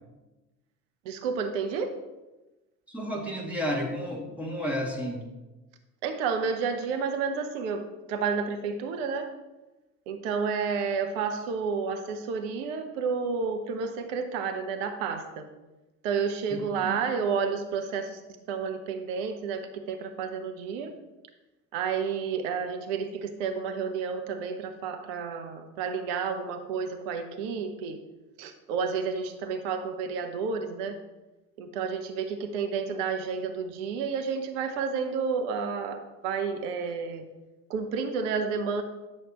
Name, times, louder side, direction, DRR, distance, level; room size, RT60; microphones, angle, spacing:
voice 1, 1.0-1.9 6.0-9.3 10.1-15.5 16.0-18.2 18.5-20.9 21.7-28.0 28.4-31.0 31.6-37.2 37.7-38.8, right 5 dB, 55° right, 7 dB, 0.9 m, -30 dB
voice 2, 2.9-5.3 16.5-16.6, equal, 5° right, -3 dB, 2.2 m, -31 dB
10.5 x 6.3 x 3.0 m, 1.1 s
figure-of-eight pair, 65°, 45 cm